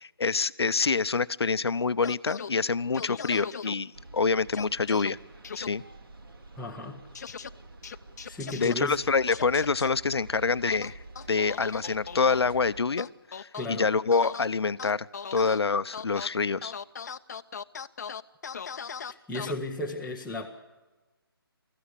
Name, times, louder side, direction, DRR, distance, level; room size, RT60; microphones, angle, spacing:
voice 1, 0.0-5.2 5.5-5.8 8.6-10.9 11.3-16.7, left 4 dB, 85° left, 16 dB, 0.7 m, -26 dB
sound 1, 2.0-2.5 2.9-3.7 4.5-5.1 5.4-5.7 7.1-7.5 7.8-8.7 9.3-9.9 10.7-12.4 13.0-13.7 14.1-14.5 14.8-15.6 15.9-16.3 16.6-19.5, left 6 dB, 45° left, 0.7 m, -38 dB
sound 2, 3.9-12.8, right 2 dB, 65° right, 2.4 m, -48 dB
voice 2, 6.5-7.0 8.2-9.0 13.5-13.9 19.1-20.5, left 1 dB, ahead, -5 dB, 0.7 m, -34 dB
23.5 x 14.5 x 9.9 m, 1.2 s
hypercardioid pair, 165°, 13 cm